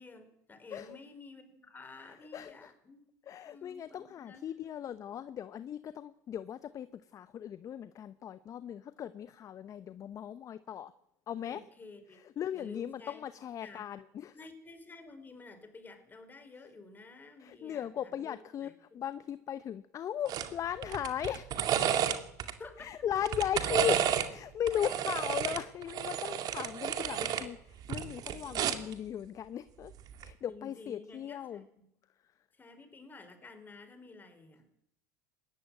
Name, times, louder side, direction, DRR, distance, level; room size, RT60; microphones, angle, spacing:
voice 1, 0.0-3.0 3.5-4.6 11.4-12.2 12.5-13.2 13.6-13.8 14.3-18.7 22.6-22.9 28.5-28.7 30.5-31.9 32.5-34.7, left 3 dB, 20° left, 8 dB, 5.2 m, -51 dB
voice 2, 2.1-2.7 3.3-10.9 11.3-11.6 12.1-14.3 17.4-21.6 22.8-29.9 30.2-31.6, left 9 dB, 40° left, 14 dB, 0.9 m, -38 dB
sound 1, 20.3-20.5 20.8-22.5 23.2-24.3 24.7-27.5 27.8-28.9 30.1-30.3, right 10 dB, 45° right, 2.3 m, -31 dB
20.0 x 16.0 x 9.2 m, 0.74 s
hypercardioid pair, 90°, 9 cm